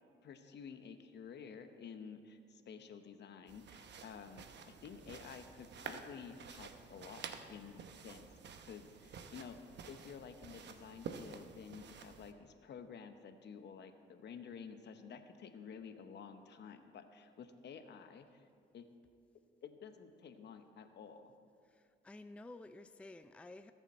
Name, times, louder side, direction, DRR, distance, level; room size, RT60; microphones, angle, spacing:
voice 1, 0.2-8.3 8.7-9.6 9.9-18.5 18.7-18.9 19.6-21.3, left 6 dB, 60° left, 8 dB, 0.9 m, -51 dB
sound 1, 3.5-12.3, right 6 dB, 60° right, 0.9 m, -51 dB
voice 2, 21.7-23.7, left 2 dB, 5° left, 10 dB, 0.4 m, -53 dB
20.0 x 6.9 x 4.3 m, 2.3 s
cardioid pair, 90°, 20 cm